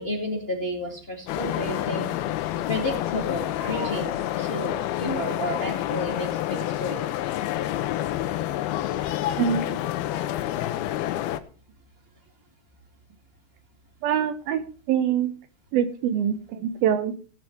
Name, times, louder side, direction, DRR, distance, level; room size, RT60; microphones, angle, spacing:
voice 1, 0.0-2.0 2.7-7.1, left 1 dB, 25° left, 1 dB, 1.5 m, -31 dB
sound 1, 1.3-11.4, left 13 dB, 90° left, 2.7 m, -28 dB
voice 2, 9.3-9.8 14.0-15.3 15.7-17.2, right 8 dB, 80° right, 10 dB, 2.9 m, -24 dB
17.0 x 7.7 x 4.6 m, 0.38 s
omnidirectional pair, 4.2 m